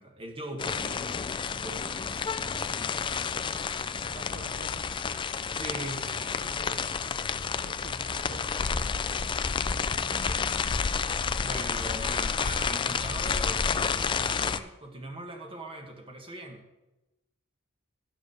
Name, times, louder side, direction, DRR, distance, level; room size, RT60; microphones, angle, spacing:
voice 1, 0.0-2.0 5.5-6.2 11.4-16.6, right 1 dB, 25° right, 3 dB, 1.4 m, -40 dB
sound 1, 0.6-14.6, left 5 dB, 25° left, 0.3 m, -30 dB
sound 2, 2.8-13.3, left 1 dB, 40° left, 0.8 m, -51 dB
voice 2, 3.0-3.7 4.0-4.9 5.7-6.9 7.6-9.1 9.9-10.6, right 3 dB, 50° right, 4 dB, 0.6 m, -50 dB
11.5 x 4.9 x 6.5 m, 1.0 s
head